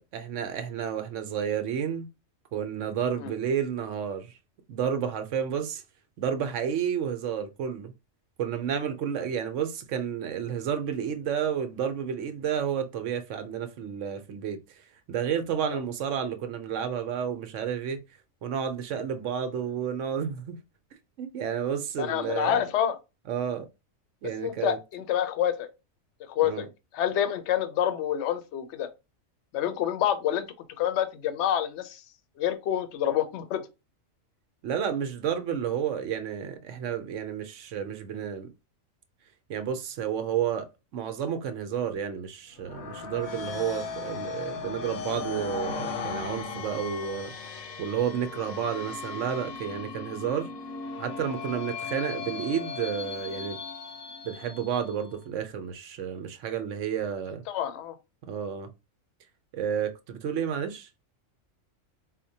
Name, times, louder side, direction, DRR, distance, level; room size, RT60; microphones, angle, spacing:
voice 1, 0.1-2.1 2.5-4.3 4.7-5.8 6.2-7.9 8.4-14.6 15.1-18.0 18.4-20.5 21.2-22.6 23.3-23.7 24.2-24.8 26.4-26.7 34.6-38.5 39.5-40.7 40.9-47.3 47.8-50.5 51.0-53.6 54.2-57.4 58.3-58.7 59.5-60.9, right 8 dB, 70° right, 0.9 m, -31 dB
voice 2, 22.0-22.9 24.4-25.7 26.3-26.7 26.9-28.9 29.5-30.5 30.8-32.0 32.4-33.6 57.5-57.9, left 10 dB, 65° left, 0.9 m, -27 dB
sound 1, 42.6-55.1, left 5 dB, 85° left, 1.1 m, -37 dB
4.4 x 2.1 x 2.7 m
omnidirectional pair, 1.4 m